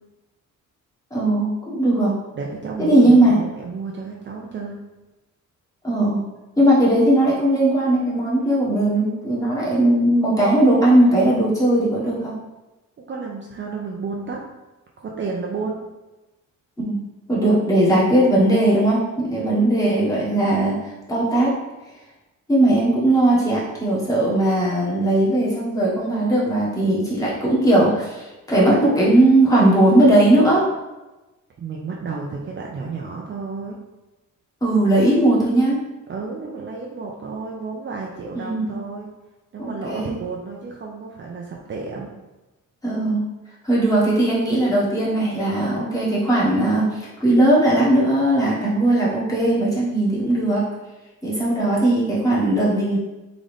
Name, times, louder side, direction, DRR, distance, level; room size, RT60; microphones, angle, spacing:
voice 1, 1.1-2.1 2.8-3.4 5.8-6.2 6.6-12.3 16.8-17.0 17.3-20.7 21.1-21.5 22.5-30.6 34.6-35.8 38.3-38.7 39.6-40.2 42.8-43.2 43.6-50.6 51.2-53.0, right 1 dB, 10° left, -7 dB, 1.5 m, -18 dB
voice 2, 2.4-4.8 13.1-14.4 15.0-15.8 19.4-19.7 31.6-33.8 36.1-39.1 39.5-42.1, right 4 dB, 35° right, -2 dB, 0.6 m, -31 dB
3.9 x 3.9 x 3.4 m, 1.1 s
cardioid pair, 130°, 32 cm